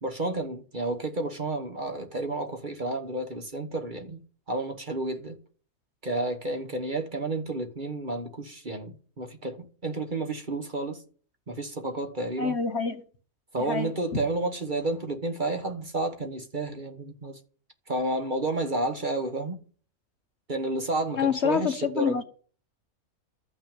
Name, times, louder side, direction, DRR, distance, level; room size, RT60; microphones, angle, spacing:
voice 1, 0.0-4.2 4.5-5.4 6.0-11.0 11.5-12.6 13.5-17.4 17.9-19.6 20.5-22.2, right 2 dB, 35° right, 1.4 m, -31 dB
voice 2, 12.4-13.0 13.7-13.9 21.2-22.2, left 6 dB, 50° left, 1.3 m, -26 dB
13.5 x 6.0 x 9.0 m
omnidirectional pair, 1.5 m